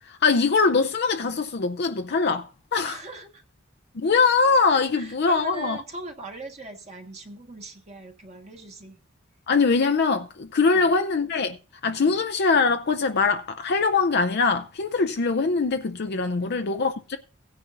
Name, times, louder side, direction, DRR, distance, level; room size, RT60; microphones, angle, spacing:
voice 1, 0.1-3.0 3.9-5.8 9.5-11.6 11.8-17.2, left 4 dB, 55° left, 0.6 m, -22 dB
voice 2, 2.8-3.4 4.9-9.0 10.7-10.9 12.0-12.2 16.4-16.7, right 2 dB, 35° right, 1.5 m, -40 dB
16.5 x 9.8 x 2.6 m
head